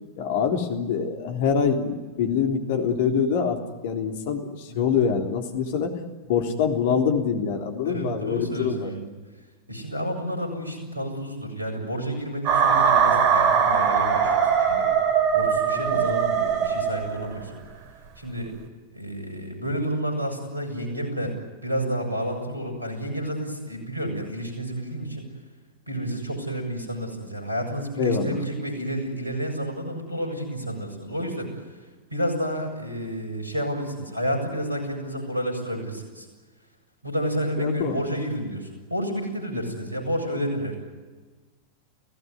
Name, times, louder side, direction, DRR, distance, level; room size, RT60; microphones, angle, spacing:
voice 1, 0.2-8.9 15.9-16.0 28.0-28.4 37.6-38.0 39.7-39.8, left 6 dB, 50° left, 4 dB, 3.5 m, -25 dB
voice 2, 7.8-9.1 9.7-14.9 15.3-17.5 18.2-18.6 18.9-21.4 21.6-25.3 25.9-31.5 32.1-36.3 37.0-40.8, equal, 85° right, 4 dB, 7.4 m, -30 dB
sound 1, 12.5-17.4, right 7 dB, 40° right, 3.4 m, -21 dB
29.5 x 17.5 x 9.6 m, 1.4 s
figure-of-eight pair, 90°, 0 cm